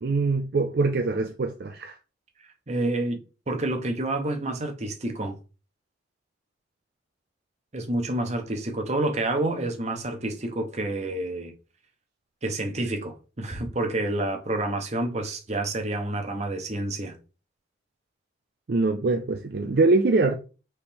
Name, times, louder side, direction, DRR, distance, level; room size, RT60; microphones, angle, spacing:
voice 1, 0.0-2.0 18.7-20.4, right 3 dB, 55° right, 0.4 m, -23 dB
voice 2, 2.7-3.2 3.5-5.4 7.7-11.5 12.4-17.2, right 2 dB, 35° right, 0.9 m, -28 dB
4.4 x 3.2 x 3.5 m
head